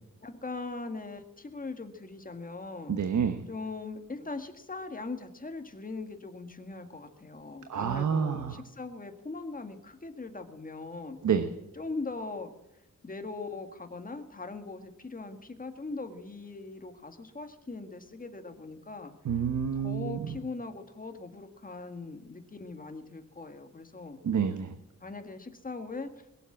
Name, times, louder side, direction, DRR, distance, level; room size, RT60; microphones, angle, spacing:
voice 1, 0.2-3.0 3.5-11.2 11.8-12.5 13.0-19.1 19.7-24.2 25.0-26.3, left 3 dB, 30° left, 7 dB, 1.9 m, -40 dB
voice 2, 2.9-3.4 7.7-8.6 11.2-11.5 19.2-20.4 24.2-24.7, right 7 dB, 75° right, 8 dB, 1.2 m, -28 dB
21.5 x 7.3 x 7.4 m, 0.95 s
wide cardioid pair, 120°, 30 cm